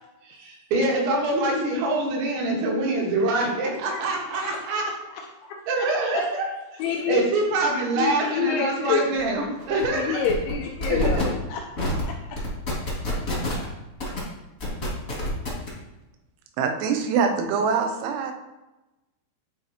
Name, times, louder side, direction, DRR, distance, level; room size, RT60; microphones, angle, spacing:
voice 1, 0.3-4.8 5.7-6.5 7.1-10.2 10.9-11.2, right 2 dB, 70° right, -2 dB, 3.3 m, -25 dB
voice 2, 4.3-4.9 5.4-6.2 6.8-7.2 8.0-9.1 9.8-12.4, left 6 dB, 85° left, 1 dB, 2.7 m, -28 dB
sound 1, 9.2-9.3 9.6-9.9 10.2-10.5 10.8-11.2 11.8-12.0 12.3-13.6 14.0-14.2 14.6-15.7, left 1 dB, 40° left, 1.1 m, -27 dB
voice 3, 16.6-18.3, right 6 dB, 90° right, 4 dB, 3.5 m, -24 dB
11.5 x 4.2 x 2.9 m, 1.0 s
omnidirectional pair, 5.8 m